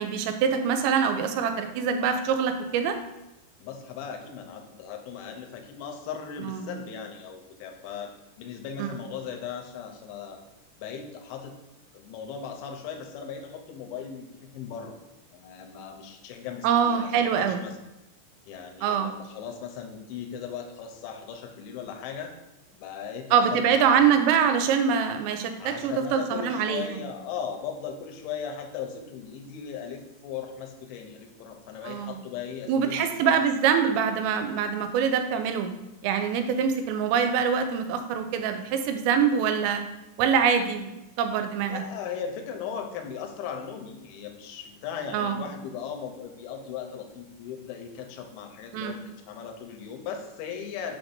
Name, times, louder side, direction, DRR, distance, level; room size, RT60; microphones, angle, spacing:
voice 1, 0.0-3.0 6.4-6.7 8.8-8.9 16.6-17.6 18.8-19.1 23.3-27.0 31.8-32.2 32.7-35.7 36.0-39.8 40.2-41.8 45.1-45.5 48.7-48.9, right 7 dB, 85° right, 7 dB, 2.8 m, -24 dB
voice 2, 3.6-10.4 10.8-11.6 11.9-15.0 15.3-17.8 18.5-22.3 22.7-24.2 25.6-33.4 41.7-51.0, left 7 dB, 80° left, 4 dB, 3.0 m, -38 dB
7.0 x 6.1 x 2.6 m, 0.97 s
omnidirectional pair, 5.2 m